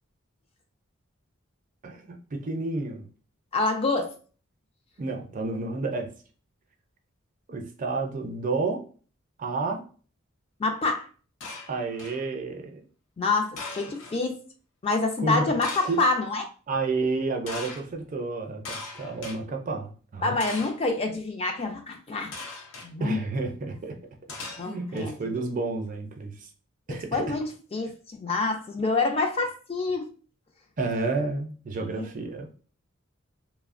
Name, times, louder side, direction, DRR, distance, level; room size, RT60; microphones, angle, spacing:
voice 1, 1.8-3.1 5.0-6.1 7.5-8.8 9.4-9.8 11.7-12.8 15.2-15.5 15.9-16.0 16.7-20.3 23.0-24.0 24.6-26.5 26.9-27.2 30.8-32.5, right 3 dB, 40° right, 0.4 m, -30 dB
voice 2, 3.5-4.1 10.6-11.1 13.2-14.4 14.8-16.4 20.2-22.3 22.8-23.2 24.6-25.2 26.9-30.1 31.8-32.1, left 3 dB, 30° left, 0.3 m, -27 dB
sound 1, 11.4-12.2 13.6-14.2 15.6-16.1 17.5-17.8 18.6-19.4 20.4-20.9 22.3-22.9 24.3-25.0, left 3 dB, 75° left, 0.6 m, -39 dB
3.0 x 2.0 x 2.4 m
head